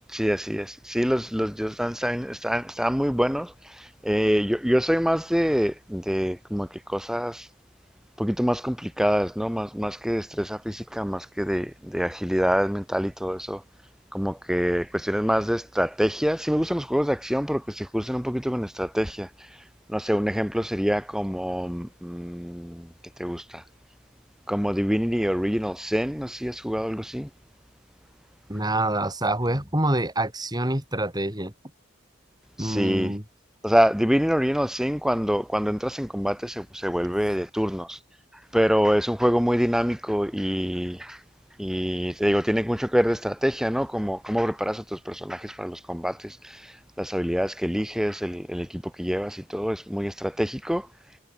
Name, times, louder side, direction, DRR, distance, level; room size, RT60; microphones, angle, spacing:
voice 1, 0.1-7.5 8.2-13.6 14.1-19.6 19.9-22.9 23.2-23.6 24.5-27.3 32.6-33.2 33.6-38.0 38.5-41.2 41.6-50.9, equal, ahead, 1.7 m, -26 dB
voice 2, 28.5-31.5 32.6-33.2, right 1 dB, 20° right, 7.7 m, -26 dB
head